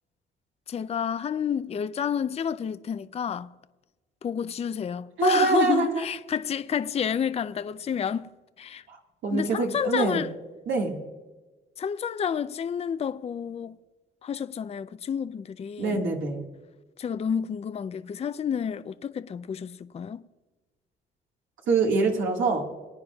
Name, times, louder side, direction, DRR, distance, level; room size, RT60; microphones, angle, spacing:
voice 1, 0.7-3.5 4.2-8.3 8.6-8.8 9.3-10.3 11.8-13.8 14.2-16.0 17.0-20.2, left 7 dB, 30° left, 0.4 m, -30 dB
voice 2, 5.2-6.1 8.9-9.0 9.2-10.2 10.7-11.0 15.8-16.4 21.7-22.7, right 4 dB, 75° right, 1.8 m, -24 dB
23.5 x 9.3 x 2.3 m
cardioid pair, 90°, 20 cm